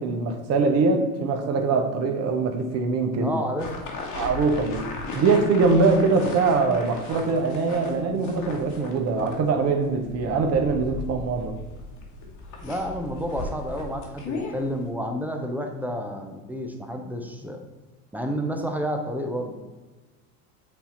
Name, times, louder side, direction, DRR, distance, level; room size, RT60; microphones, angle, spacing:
voice 1, 0.0-3.3 4.1-4.9 5.1-11.5, right 4 dB, 35° right, 4 dB, 0.9 m, -23 dB
voice 2, 3.2-3.7 12.6-17.6 18.1-19.6, equal, 5° right, 4 dB, 0.6 m, -30 dB
sound 1, 3.6-14.9, left 2 dB, 40° left, 1.5 m, -37 dB
8.2 x 2.8 x 4.3 m, 1.2 s
hypercardioid pair, 100°, 44 cm